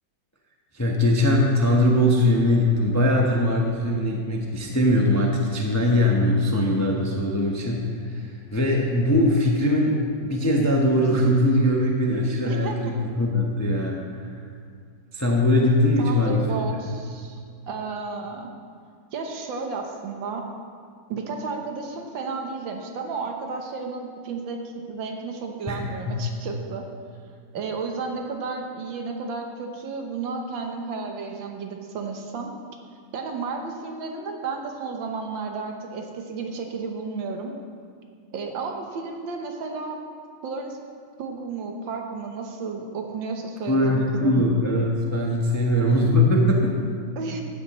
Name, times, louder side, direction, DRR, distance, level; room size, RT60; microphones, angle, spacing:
voice 1, 0.7-14.3 15.1-16.6 25.7-26.2 43.7-46.7, left 1 dB, 15° left, -1 dB, 0.5 m, -21 dB
voice 2, 12.5-12.8 16.0-17.4 17.7-18.5 19.1-20.4 21.1-26.8 27.5-32.5 33.1-37.5 38.3-40.0 40.4-40.8 41.2-44.4 47.2-47.4, right 4 dB, 80° right, 3 dB, 1.8 m, -32 dB
14.5 x 10.0 x 3.1 m, 2.1 s
omnidirectional pair, 2.1 m